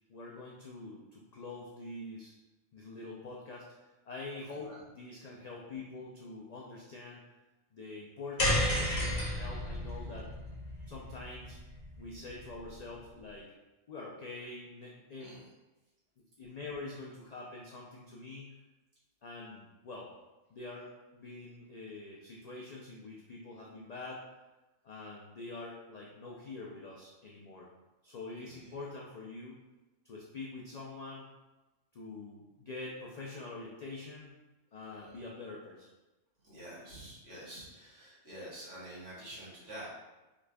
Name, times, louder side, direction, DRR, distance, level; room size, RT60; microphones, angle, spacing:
voice 1, 0.1-2.3 2.7-3.8 4.1-7.2 7.7-10.3 10.9-11.6 12.0-13.5 13.9-15.3 16.4-18.5 19.2-20.1 20.5-24.2 24.8-27.7 28.0-29.6 30.0-31.3 31.9-34.4 34.7-35.9, left 3 dB, 70° left, -3 dB, 0.3 m, -45 dB
sound 1, 8.4-12.8, left 1 dB, 45° left, 0.9 m, -33 dB
voice 2, 28.4-28.8 34.9-35.2 36.4-39.9, right 1 dB, 80° right, -9 dB, 1.7 m, -48 dB
3.7 x 3.2 x 2.2 m, 1.1 s
omnidirectional pair, 1.2 m